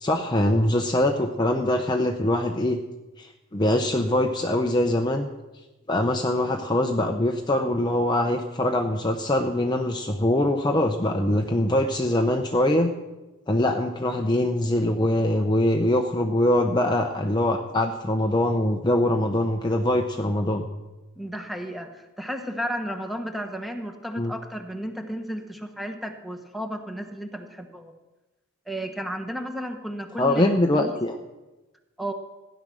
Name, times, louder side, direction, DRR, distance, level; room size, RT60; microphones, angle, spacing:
voice 1, 0.0-2.8 3.2-5.3 5.9-12.9 13.5-20.7 24.2-24.3 30.2-31.2, left 1 dB, 20° left, 4 dB, 0.7 m, -23 dB
voice 2, 21.2-27.9 28.7-30.9 32.0-32.1, equal, ahead, 5 dB, 1.2 m, -33 dB
16.0 x 10.5 x 6.3 m, 1.1 s
head